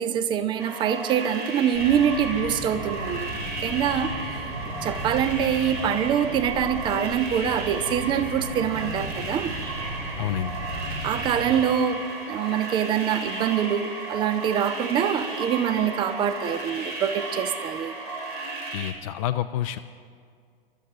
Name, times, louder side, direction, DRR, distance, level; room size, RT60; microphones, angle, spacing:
voice 1, 0.0-3.3 3.6-4.1 4.8-9.5 11.0-17.9, right 8 dB, 15° right, 12 dB, 0.5 m, -25 dB
sound 1, 0.6-18.9, right 3 dB, 55° right, 2.4 m, -34 dB
Bird vocalization bird call bird song, 1.7-11.6, equal, 35° right, 4.2 m, -36 dB
voice 2, 10.2-10.6 18.7-19.8, left 12 dB, 35° left, 8 dB, 0.4 m, -28 dB
28.0 x 13.0 x 2.9 m, 2.2 s
figure-of-eight pair, 100°, 29 cm